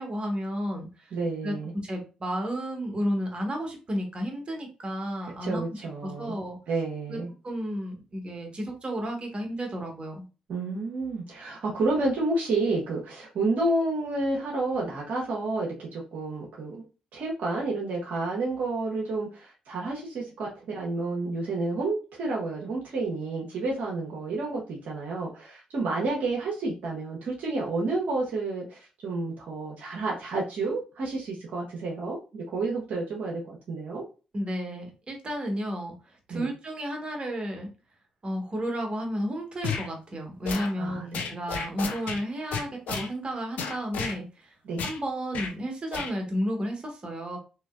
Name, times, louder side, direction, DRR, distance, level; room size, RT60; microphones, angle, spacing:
voice 1, 0.0-1.1 1.4-1.6 1.8-6.6 7.1-10.2 34.3-37.7 38.2-44.5 44.8-47.4, equal, 40° right, 2 dB, 1.2 m, -32 dB
voice 2, 1.1-1.7 5.4-6.3 6.7-7.3 10.5-16.8 17.1-34.0 36.3-36.5 40.8-41.3 44.6-44.8, right 2 dB, 70° right, -3 dB, 0.8 m, -30 dB
sound 1, 39.6-39.9 40.4-40.7 41.1-42.2 42.5-43.1 43.6-44.2 44.8-45.0 45.3-45.5 45.9-46.1, left 6 dB, 70° left, 0.5 m, -32 dB
3.0 x 2.9 x 2.3 m, 0.32 s
hypercardioid pair, 45°, 3 cm